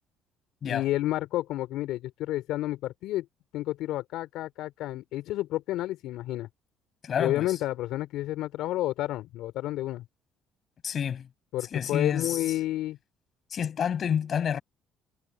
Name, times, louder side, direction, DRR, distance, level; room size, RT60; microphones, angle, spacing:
voice 1, 0.7-3.3 3.5-6.5 7.2-10.0 11.5-13.0, left 15 dB, 75° left, 5.0 m, -30 dB
voice 2, 7.0-7.6 10.8-11.3 11.7-12.4 13.5-14.6, left 8 dB, 50° left, 7.1 m, -29 dB
supercardioid pair, 75°, 0 cm